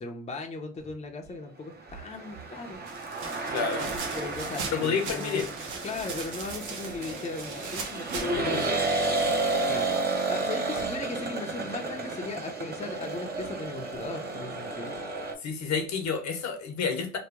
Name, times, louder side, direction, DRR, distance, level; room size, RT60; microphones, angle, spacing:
voice 1, 0.0-2.8 4.2-5.5 5.8-8.6 9.7-14.9, left 3 dB, 20° left, 0.6 m, -37 dB
sound 1, 0.7-1.4 1.9-2.8 3.3-3.5 3.8-4.8 5.3-5.4 5.9-7.0 7.6-7.7 8.0-8.5 8.8-9.4 9.9-10.1 10.4-12.2 12.6-14.1 14.9-15.0, right 4 dB, 55° right, 1.3 m, -49 dB
sound 2, 1.9-15.3, right 3 dB, 35° right, 0.8 m, -32 dB
sound 3, 2.9-9.9, right 5 dB, 80° right, 0.8 m, -40 dB
voice 2, 3.5-3.9 4.7-5.5 8.3-8.8 15.4-17.2, left 5 dB, 65° left, 0.9 m, -30 dB
2.9 x 2.2 x 3.4 m
cardioid pair, 90°, 30 cm